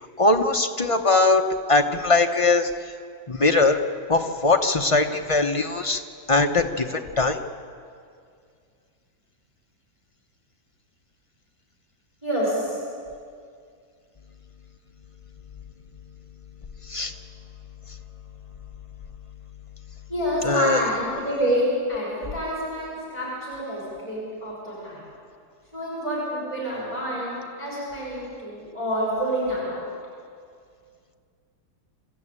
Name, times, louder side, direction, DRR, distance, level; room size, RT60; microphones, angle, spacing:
voice 1, 0.2-1.4 1.7-2.7 3.3-3.8 4.1-6.0 6.3-7.4 16.9-17.1 20.4-20.8, left 3 dB, 35° left, 5 dB, 0.5 m, -21 dB
voice 2, 12.2-12.8 20.1-25.0 25.7-29.8, equal, 15° right, -6 dB, 6.2 m, -27 dB
26.5 x 14.5 x 8.8 m, 2.3 s
omnidirectional pair, 2.0 m